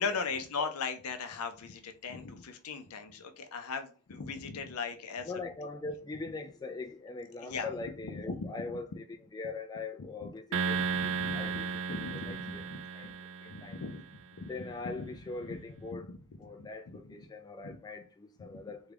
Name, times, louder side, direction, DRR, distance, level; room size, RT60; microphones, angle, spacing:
voice 1, 0.0-5.3 7.4-7.7 8.3-8.5 10.2-10.3 10.8-11.6 11.9-12.8 13.5-14.5 14.8-15.1 16.9-17.0 17.6-17.8 18.4-18.5, left 5 dB, 75° left, 0.5 m, -38 dB
voice 2, 5.2-12.7 12.9-13.1 13.4-13.8 14.5-16.1 16.4-18.9, left 3 dB, 20° left, 0.3 m, -42 dB
sound 1, 10.5-14.0, right 5 dB, 60° right, 0.3 m, -34 dB
3.6 x 2.3 x 3.3 m
head